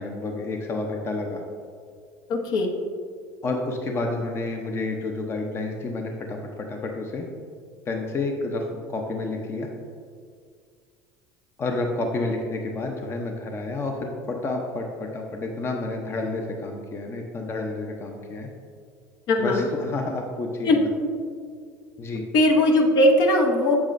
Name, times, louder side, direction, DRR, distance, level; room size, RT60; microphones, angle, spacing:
voice 1, 0.0-1.4 3.4-7.3 7.9-9.7 11.6-18.5 19.4-20.9 22.0-22.2, left 2 dB, 30° left, 2 dB, 0.7 m, -30 dB
voice 2, 2.3-2.7 19.3-19.7 20.6-20.8 22.3-23.8, left 1 dB, 60° left, 2 dB, 1.0 m, -19 dB
7.3 x 7.1 x 2.6 m, 2.1 s
supercardioid pair, 95°, 8 cm